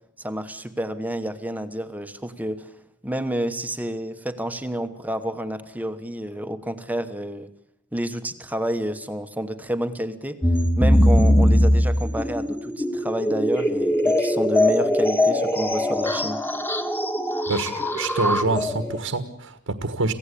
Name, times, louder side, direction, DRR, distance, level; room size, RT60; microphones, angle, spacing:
voice 1, 0.2-2.7 3.0-7.5 7.9-16.4, right 1 dB, 5° right, 8 dB, 1.2 m, -29 dB
sound 1, 10.4-19.0, left 1 dB, 10° left, 1.7 m, -21 dB
voice 2, 17.5-20.1, right 3 dB, 70° right, 8 dB, 1.6 m, -26 dB
27.0 x 16.5 x 8.5 m, 0.79 s
head